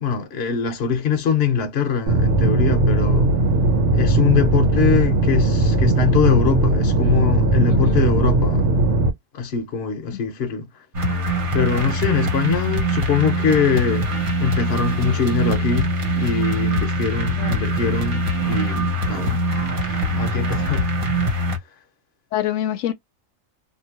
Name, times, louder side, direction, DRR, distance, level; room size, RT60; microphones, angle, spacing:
voice 1, 0.0-3.3 3.9-8.7 9.3-10.7 11.5-14.1 14.4-19.4 19.8-20.9, left 6 dB, 55° left, 1.0 m, -23 dB
sound 1, 2.1-9.1, right 2 dB, 65° right, 1.1 m, -18 dB
voice 2, 7.7-8.0 17.4-17.5 22.3-22.9, left 12 dB, 80° left, 1.0 m, -25 dB
sound 2, 10.9-21.6, right 1 dB, 45° right, 1.1 m, -23 dB
2.8 x 2.5 x 2.8 m
omnidirectional pair, 1.4 m